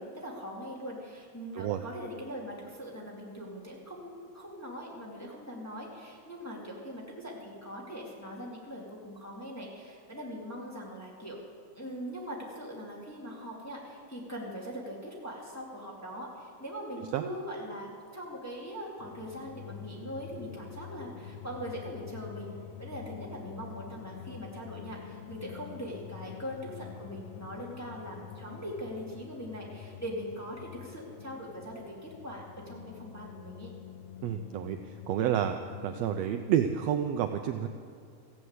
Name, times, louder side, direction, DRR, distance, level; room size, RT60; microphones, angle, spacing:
voice 1, 0.0-11.4 11.7-22.5 22.8-33.7, equal, 5° left, -3 dB, 1.8 m, -41 dB
sound 1, 19.0-36.6, left 9 dB, 85° left, 1.3 m, -47 dB
voice 2, 34.2-34.8 35.1-35.6 35.8-37.7, right 10 dB, 80° right, 6 dB, 1.5 m, -29 dB
15.0 x 9.4 x 8.0 m, 2.4 s
omnidirectional pair, 3.4 m